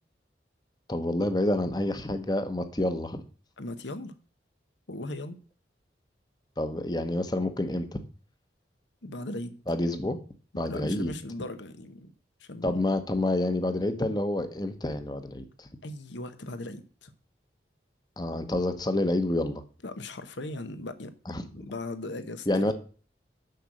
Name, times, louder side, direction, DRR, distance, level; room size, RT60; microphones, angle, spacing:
voice 1, 0.9-3.2 6.6-8.0 9.7-10.2 10.6-11.1 12.6-15.7 18.2-19.6 21.3-21.4 22.5-22.7, left 1 dB, 20° left, 0.9 m, -28 dB
voice 2, 3.6-4.1 4.9-5.4 9.0-9.6 10.6-12.1 12.4-12.8 15.8-17.1 19.8-21.1 21.4-22.7, left 2 dB, 80° left, 1.0 m, -38 dB
6.7 x 6.3 x 7.5 m
head